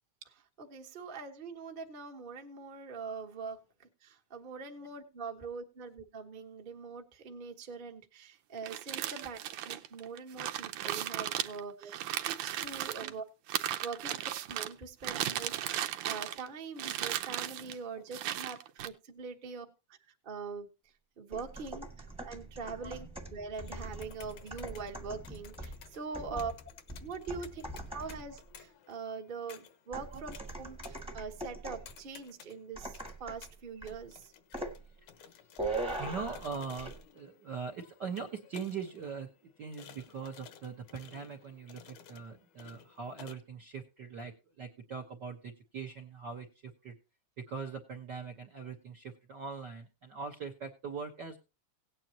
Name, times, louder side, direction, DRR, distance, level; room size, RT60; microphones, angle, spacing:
voice 1, 0.2-9.4 9.6-12.0 12.2-13.2 13.8-15.5 16.0-19.7 20.2-20.7 21.2-26.5 27.0-27.6 27.9-34.3, right 5 dB, 35° right, 2 dB, 0.9 m, -43 dB
sound 1, 8.6-13.1 13.5-14.7 15.0-16.5 16.8-17.8 18.1-18.9, right 12 dB, 80° right, 2.2 m, -36 dB
sound 2, 21.3-28.4 29.9-31.9 32.8-33.5 33.8-34.0 34.5-34.8 35.6-36.5 36.8-37.0, right 2 dB, 5° right, 1.0 m, -41 dB
sound 3, 23.5-43.3, left 8 dB, 75° left, 2.5 m, -56 dB
voice 2, 35.2-46.9 47.4-51.4, right 5 dB, 55° right, 2 dB, 1.2 m, -42 dB
17.5 x 9.2 x 2.8 m, 0.28 s
omnidirectional pair, 3.5 m